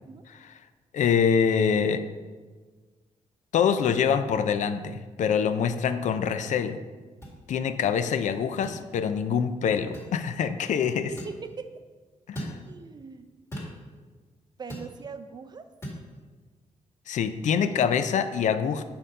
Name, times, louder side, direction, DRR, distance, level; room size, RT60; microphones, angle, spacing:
voice 1, 0.9-2.0 3.5-6.8 7.5-11.1 12.3-12.6 17.1-18.8, left 7 dB, 70° left, 11 dB, 0.4 m, -25 dB
sound 1, 7.2-7.4 8.6-8.8 9.9-10.1 11.2-11.4 12.3-12.6 13.5-13.8 14.7-14.9 15.8-16.0, equal, 20° left, 1.9 m, -37 dB
voice 2, 11.1-11.7 12.7-13.3 14.6-15.6, right 5 dB, 30° right, 9 dB, 0.4 m, -40 dB
6.6 x 3.8 x 5.3 m, 1.4 s
wide cardioid pair, 130°, 13 cm